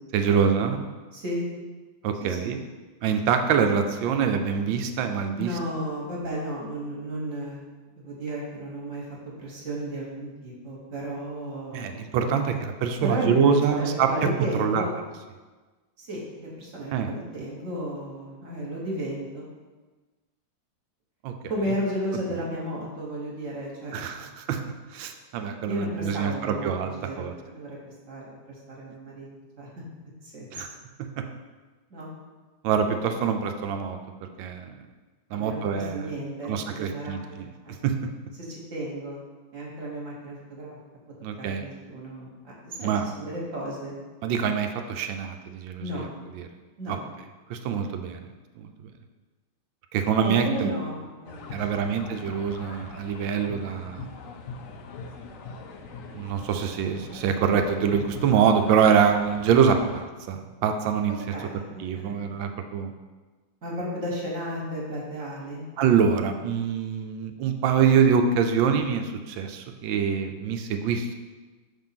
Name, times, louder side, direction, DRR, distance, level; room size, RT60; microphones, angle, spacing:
voice 1, 0.1-0.8 2.0-2.6 3.0-5.6 11.7-14.8 16.9-17.1 21.2-21.3 23.9-24.6 24.9-27.3 30.5-30.7 31.0-31.3 32.6-34.7 35.3-36.1 36.4-37.5 37.8-38.0 41.2-41.7 42.8-43.1 44.2-46.1 46.3-46.5 46.9-47.0 47.5-48.2 48.6-48.9 49.9-50.7 51.5-54.0 56.1-61.1 61.8-62.9 65.8-71.1, right 7 dB, 85° right, 6 dB, 1.3 m, -25 dB
voice 2, 1.1-1.4 2.2-2.5 5.4-7.6 8.0-9.1 9.4-11.9 13.0-13.3 13.7-14.9 16.0-19.4 21.5-24.3 25.7-27.8 28.1-29.3 29.6-29.7 30.2-30.6 31.9-32.1 35.3-37.7 38.4-39.2 39.5-40.8 41.4-43.9 45.8-46.1 46.8-47.0 50.2-52.3 61.3-61.7 61.9-62.2 63.6-65.7, right 1 dB, 45° right, -4 dB, 1.5 m, -34 dB
sound 1, 51.3-60.0, left 4 dB, 70° left, 0.7 m, -41 dB
5.6 x 3.6 x 5.8 m, 1.3 s
omnidirectional pair, 2.0 m